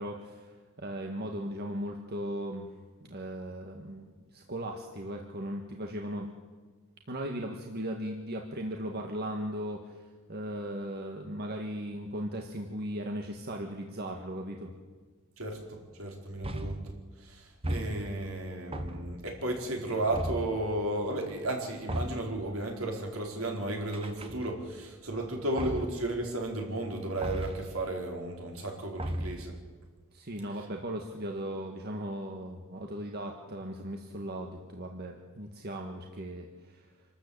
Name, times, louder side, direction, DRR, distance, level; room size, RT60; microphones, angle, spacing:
voice 1, 0.0-2.7 3.0-6.3 7.1-14.7 30.1-36.9, right 1 dB, 50° right, 2 dB, 1.8 m, -37 dB
voice 2, 15.4-16.8 17.2-29.5, right 1 dB, 70° right, 1 dB, 4.6 m, -34 dB
sound 1, 16.4-17.0 17.6-18.3 18.7-19.3 20.1-20.6 21.9-22.4 23.9-24.7 25.6-26.1 27.2-27.7 29.0-29.5, right 1 dB, 25° right, 1.6 m, -36 dB
26.5 x 13.5 x 8.8 m, 1.4 s
head